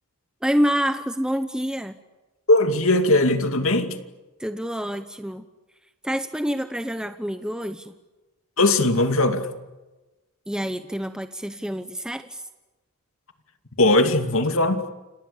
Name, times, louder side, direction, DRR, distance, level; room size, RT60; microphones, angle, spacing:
voice 1, 0.4-2.0 4.4-5.4 6.0-7.9 10.5-12.4, equal, 5° right, 1.0 m, -27 dB
voice 2, 2.5-4.0 8.6-9.5 13.8-14.9, left 2 dB, 65° left, 2.6 m, -19 dB
30.0 x 28.0 x 7.0 m
head